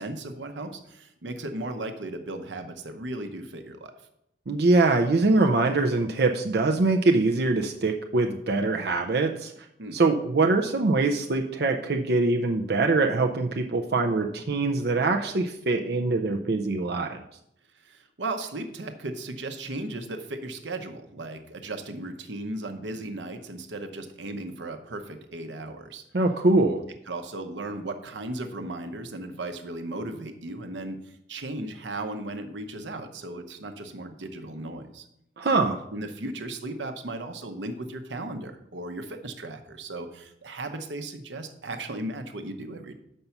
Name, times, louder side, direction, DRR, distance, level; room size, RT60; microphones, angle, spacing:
voice 1, 0.0-3.9 9.8-10.0 17.7-26.0 27.1-35.1 35.9-42.9, right 2 dB, 90° right, 7 dB, 0.9 m, -36 dB
voice 2, 4.5-9.5 9.9-17.2 26.1-26.8 35.4-35.8, right 3 dB, 60° right, 3 dB, 0.5 m, -23 dB
6.8 x 5.4 x 5.8 m, 0.78 s
head